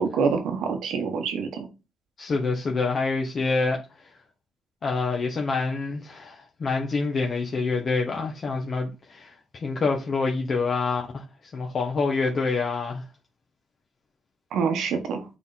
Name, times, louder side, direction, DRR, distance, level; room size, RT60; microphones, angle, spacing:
voice 1, 0.0-1.7 14.5-15.2, right 5 dB, 80° right, 1.6 m, -26 dB
voice 2, 2.2-4.1 4.8-11.2 11.5-13.0, left 4 dB, 45° left, 1.3 m, -27 dB
7.1 x 3.7 x 4.2 m
cardioid pair, 90°, 0 cm